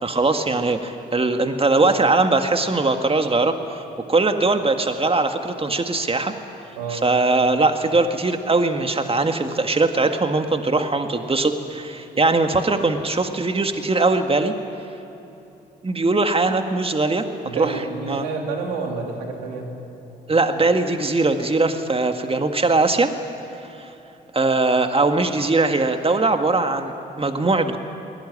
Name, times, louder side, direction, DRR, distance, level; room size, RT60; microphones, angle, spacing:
voice 1, 0.0-3.8 4.1-6.3 6.9-14.5 15.8-17.3 17.5-17.8 18.1-18.2 20.3-23.1 23.8-23.9 24.3-27.8, right 3 dB, 25° right, 6 dB, 2.0 m, -20 dB
voice 2, 17.4-19.7, right 4 dB, 90° right, 1 dB, 2.9 m, -29 dB
22.0 x 20.0 x 10.0 m, 2.9 s
hypercardioid pair, 40°, 21 cm